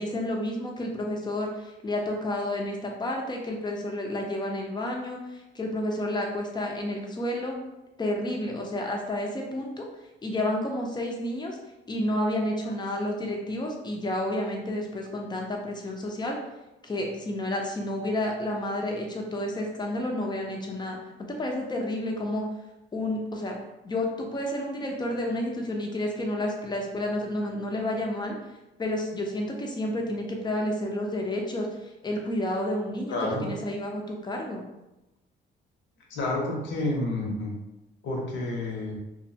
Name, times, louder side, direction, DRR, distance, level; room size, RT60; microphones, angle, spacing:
voice 1, 0.0-7.6 8.0-9.9 10.2-11.6 11.9-16.4 16.8-21.0 21.3-22.5 22.9-23.6 23.8-28.4 28.8-34.6, left 1 dB, 20° left, 0 dB, 0.6 m, -30 dB
voice 2, 33.1-33.5 36.1-37.5 38.0-39.0, left 2 dB, 70° left, -2 dB, 0.8 m, -29 dB
2.6 x 2.1 x 2.7 m, 0.96 s
cardioid pair, 90°, 20 cm